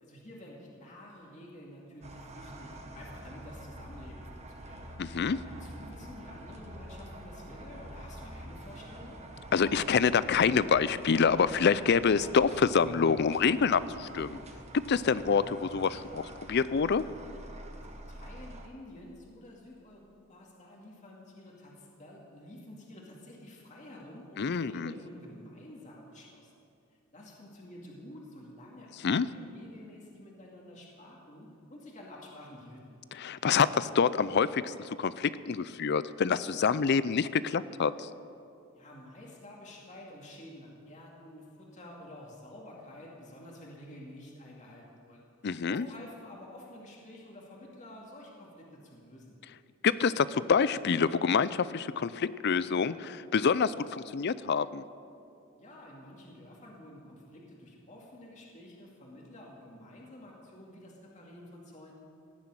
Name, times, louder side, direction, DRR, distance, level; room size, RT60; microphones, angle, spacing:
voice 1, 0.0-4.8 5.5-9.2 17.8-26.5 27.1-33.0 38.7-49.4 55.6-61.9, left 1 dB, 35° left, -2 dB, 2.3 m, -50 dB
sound 1, 2.0-18.7, right 1 dB, 30° right, 1.3 m, -46 dB
voice 2, 5.0-5.4 9.5-14.4 14.7-17.1 24.4-24.9 29.0-29.3 33.2-38.1 45.4-45.9 49.8-54.8, left 6 dB, 55° left, 16 dB, 0.5 m, -27 dB
17.5 x 7.4 x 9.0 m, 2.5 s
head